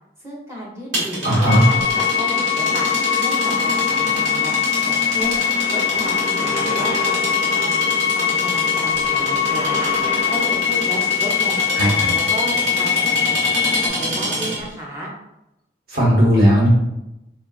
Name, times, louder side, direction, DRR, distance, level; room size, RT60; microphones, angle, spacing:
voice 1, 0.2-2.9 3.2-4.5 4.9-5.4 5.7-7.1 7.5-7.8 8.1-9.9 10.3-15.1, equal, 15° right, -4 dB, 0.6 m, -32 dB
sound 1, 0.9-14.7, right 1 dB, 80° right, 1.2 m, -27 dB
voice 2, 1.2-1.6 11.8-12.1 15.9-16.7, equal, 55° right, -5 dB, 1.1 m, -16 dB
sound 2, 1.5-13.9, left 8 dB, 35° left, 0.4 m, -21 dB
3.6 x 2.3 x 2.3 m, 0.89 s
head